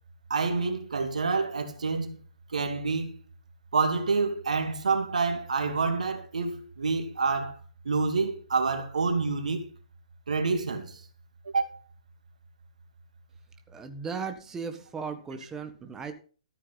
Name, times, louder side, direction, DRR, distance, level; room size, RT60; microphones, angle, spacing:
voice 1, 0.3-2.1 2.5-3.1 3.7-7.6 7.8-9.6 10.3-11.0 11.5-11.8, right 4 dB, 70° right, 2.4 m, -27 dB
voice 2, 13.7-16.1, right 5 dB, 10° right, 1.5 m, -36 dB
14.0 x 9.2 x 4.1 m
figure-of-eight pair, 130°, 4 cm